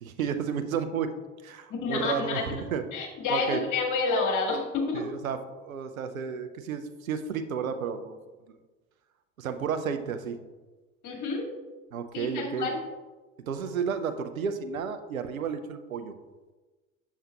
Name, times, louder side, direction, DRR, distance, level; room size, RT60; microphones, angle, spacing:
voice 1, 0.0-1.1 1.4-2.4 2.7-2.8 3.3-3.6 4.9-8.2 9.4-10.4 11.9-12.8 13.5-16.1, right 7 dB, 90° right, 9 dB, 0.6 m, -32 dB
voice 2, 1.7-2.7 2.9-5.0 11.0-11.5 12.1-12.8, left 4 dB, 50° left, 1 dB, 2.1 m, -29 dB
7.3 x 6.9 x 2.8 m, 1.2 s
hypercardioid pair, 65°, 40 cm